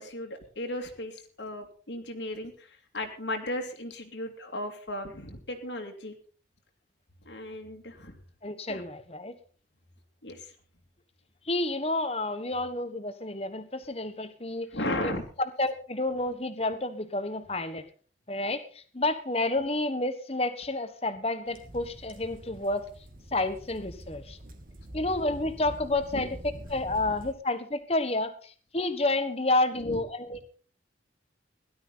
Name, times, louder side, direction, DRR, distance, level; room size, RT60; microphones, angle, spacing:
voice 1, 0.0-6.1 7.2-8.2 8.7-8.8 10.2-10.5 14.7-15.3 26.1-26.3 29.8-30.0, left 1 dB, 75° left, 3 dB, 2.6 m, -36 dB
voice 2, 8.4-9.3 11.5-14.7 15.0-17.8 18.3-22.8 23.3-24.4 24.9-26.4 26.7-30.5, left 2 dB, 35° left, 11 dB, 1.4 m, -30 dB
sound 1, 21.5-27.3, right 1 dB, 50° right, 2.4 m, -45 dB
17.0 x 12.0 x 4.1 m, 0.42 s
head